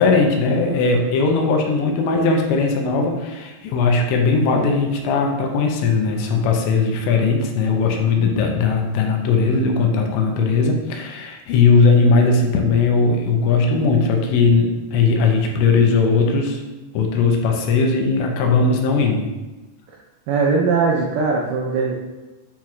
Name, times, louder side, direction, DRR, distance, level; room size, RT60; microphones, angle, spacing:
voice 1, 0.0-16.6 16.9-19.3, left 4 dB, 80° left, 2 dB, 2.9 m, -18 dB
voice 2, 20.3-21.9, right 4 dB, 90° right, -2 dB, 2.1 m, -20 dB
8.9 x 4.4 x 2.4 m, 1.1 s
omnidirectional pair, 5.3 m